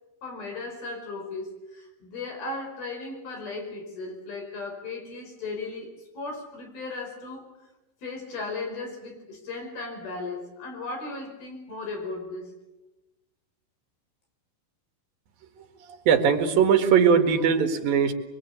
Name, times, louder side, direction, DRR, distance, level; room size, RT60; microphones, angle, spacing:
voice 1, 0.2-7.5 8.0-12.5, left 3 dB, 90° left, 3 dB, 7.0 m, -36 dB
voice 2, 16.1-18.1, right 7 dB, 75° right, 6 dB, 3.6 m, -20 dB
24.5 x 24.0 x 8.5 m, 1.0 s
omnidirectional pair, 4.2 m